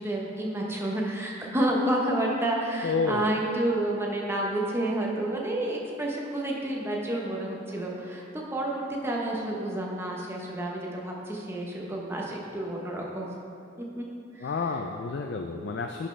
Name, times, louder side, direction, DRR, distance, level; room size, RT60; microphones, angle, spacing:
voice 1, 0.0-13.4 14.0-14.1 14.3-14.8, right 1 dB, 15° right, -2 dB, 0.9 m, -30 dB
voice 2, 2.8-3.3 14.4-16.1, left 4 dB, 60° left, 4 dB, 0.3 m, -30 dB
10.5 x 5.3 x 3.3 m, 2.6 s
head